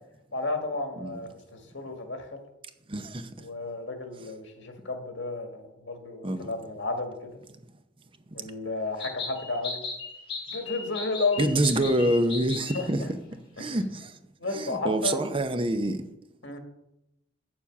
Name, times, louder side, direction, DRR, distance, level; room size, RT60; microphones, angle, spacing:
voice 1, 0.3-2.4 3.4-7.3 8.3-9.8 10.5-11.9 12.7-13.1 13.6-13.8 14.4-15.2 16.4-16.6, left 3 dB, 80° left, 1.8 m, -32 dB
voice 2, 2.9-3.3 6.2-6.5 11.4-13.2 13.6-14.2 14.5-16.0, right 1 dB, 30° right, 0.7 m, -26 dB
sound 1, 9.0-12.9, left 4 dB, 30° left, 2.4 m, -37 dB
8.5 x 7.2 x 6.0 m
head